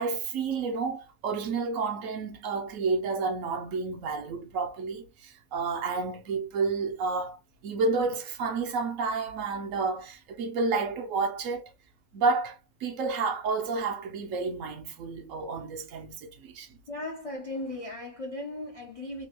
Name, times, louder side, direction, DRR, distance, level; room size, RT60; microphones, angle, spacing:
voice 1, 0.0-7.4 7.6-11.7 12.1-16.7, right 4 dB, 70° right, 1.0 m, -30 dB
voice 2, 16.9-19.3, left 1 dB, 45° left, 0.4 m, -37 dB
3.0 x 2.3 x 2.9 m
omnidirectional pair, 1.5 m